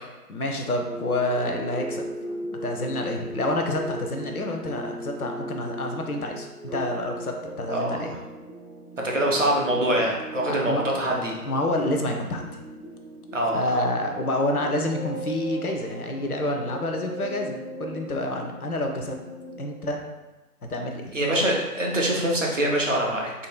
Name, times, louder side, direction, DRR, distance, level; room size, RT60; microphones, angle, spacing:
voice 1, 0.3-2.1 2.5-8.2 10.4-11.1 11.4-12.6 13.5-19.2 19.6-20.0 20.7-21.1, left 1 dB, 65° left, 3 dB, 0.6 m, -28 dB
sound 1, 0.8-19.6, right 1 dB, 5° right, 1.4 m, -38 dB
voice 2, 7.7-8.2 9.0-11.4 13.3-13.8 21.1-23.3, right 1 dB, 50° right, -1 dB, 0.7 m, -24 dB
3.8 x 2.7 x 2.2 m, 1.1 s
figure-of-eight pair, 160°, 48 cm